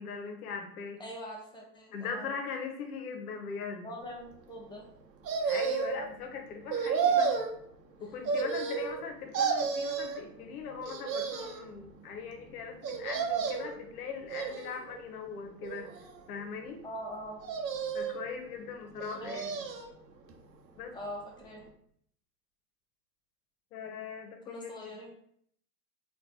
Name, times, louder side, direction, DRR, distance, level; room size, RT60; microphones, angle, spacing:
voice 1, 0.0-1.0 1.9-3.9 5.4-7.3 8.0-15.9 16.3-16.8 17.9-19.6 20.8-20.9 23.7-25.0, left 5 dB, 60° left, 4 dB, 0.8 m, -40 dB
voice 2, 1.0-2.3 3.8-4.9 6.9-7.3 16.8-17.4 19.1-19.4 20.9-21.6 24.4-25.1, equal, 10° left, -2 dB, 0.8 m, -43 dB
sound 1, 5.2-6.1 6.7-7.5 8.2-9.0 9.3-10.2 10.8-11.6 12.8-13.8 14.3-15.0 15.6-16.4 17.4-18.2 19.0-19.9 20.3-20.4, right 6 dB, 75° right, 0.7 m, -31 dB
4.3 x 2.3 x 2.7 m, 0.67 s
figure-of-eight pair, 90°, 50 cm